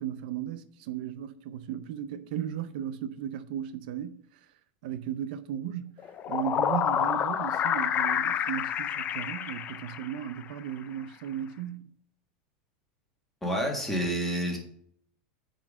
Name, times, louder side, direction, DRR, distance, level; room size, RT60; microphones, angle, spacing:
voice 1, 0.0-4.2 4.8-5.9 6.3-11.9, right 10 dB, 70° right, 0.6 m, -36 dB
sound 1, 6.0-10.4, left 9 dB, 30° left, 0.5 m, -29 dB
voice 2, 13.4-14.6, equal, 5° left, 1.7 m, -28 dB
9.1 x 3.9 x 4.9 m
supercardioid pair, 150°, 5 cm